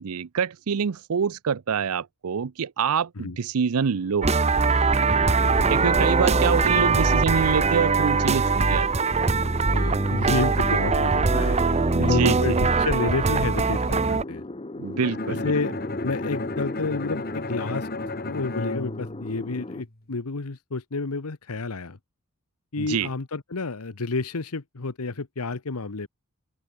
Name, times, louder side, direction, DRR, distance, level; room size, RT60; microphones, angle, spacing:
voice 1, 0.0-4.3 5.7-8.9 11.9-12.6 14.8-15.5 22.8-23.1, right 6 dB, 80° right, 0.5 m, -26 dB
sound 1, 3.9-19.8, left 2 dB, 25° left, 1.0 m, -36 dB
sound 2, 4.2-14.2, right 4 dB, 30° right, 0.7 m, -22 dB
voice 2, 5.1-5.9 9.7-11.6 12.0-14.4 15.3-15.7 16.0-17.9 18.2-22.0 22.7-26.1, left 3 dB, 85° left, 1.1 m, -30 dB
Bowed string instrument, 15.0-19.9, left 2 dB, 45° left, 2.7 m, -34 dB
open air
head